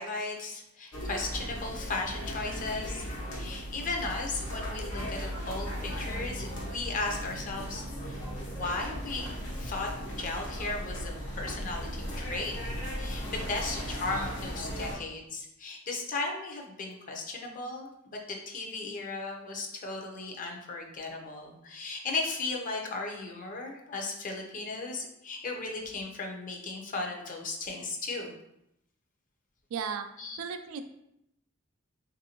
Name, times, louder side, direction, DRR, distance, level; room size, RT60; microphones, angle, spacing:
voice 1, 0.0-9.3 9.5-9.9 10.2-12.6 13.0-28.3 30.2-30.4, left 3 dB, 40° left, 1 dB, 0.5 m, -36 dB
sound 1, 0.9-15.0, equal, 70° left, 0.8 m, -37 dB
voice 2, 29.7-30.1 30.4-30.8, right 6 dB, 75° right, 8 dB, 0.3 m, -34 dB
3.4 x 2.6 x 2.8 m, 0.81 s
head